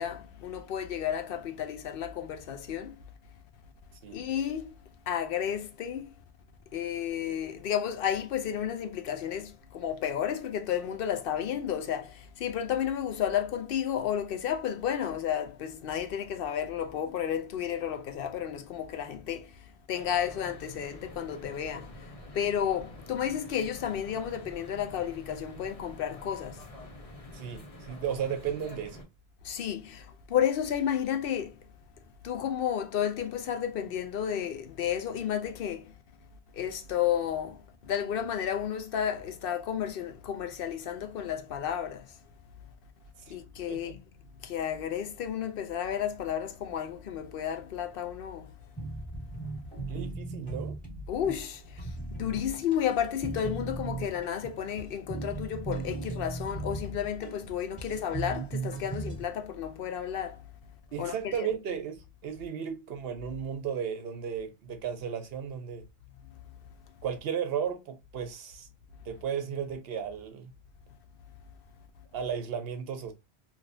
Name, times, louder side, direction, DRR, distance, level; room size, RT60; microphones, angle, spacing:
voice 1, 0.0-3.0 4.1-4.7 5.1-6.2 6.7-26.6 29.4-31.6 32.2-36.0 36.5-42.2 43.3-44.0 44.4-48.5 51.1-60.4 61.0-61.5, left 9 dB, 65° left, 0.8 m, -32 dB
sound 1, 19.9-29.0, left 1 dB, 35° left, 0.9 m, -47 dB
voice 2, 27.3-29.0 43.3-43.4 43.7-44.0 49.9-50.8 60.9-65.8 67.0-68.7 69.1-70.5 72.1-73.1, right 8 dB, 70° right, 0.9 m, -34 dB
sound 2, 48.8-59.2, right 3 dB, 10° left, 1.4 m, -38 dB
3.1 x 2.6 x 2.5 m
omnidirectional pair, 1.1 m